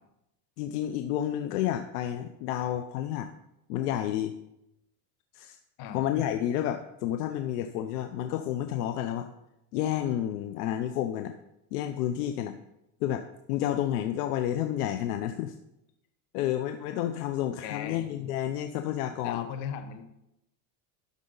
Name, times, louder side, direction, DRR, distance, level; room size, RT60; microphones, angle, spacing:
voice 1, 0.6-3.3 3.7-4.3 5.3-5.6 5.9-9.3 9.7-11.4 11.7-12.6 13.0-15.5 16.3-19.5, left 11 dB, 85° left, 7 dB, 0.8 m, -30 dB
voice 2, 17.6-18.0 19.2-20.0, left 8 dB, 65° left, 7 dB, 1.4 m, -37 dB
12.0 x 6.4 x 3.9 m, 0.86 s
supercardioid pair, 130°, 45 cm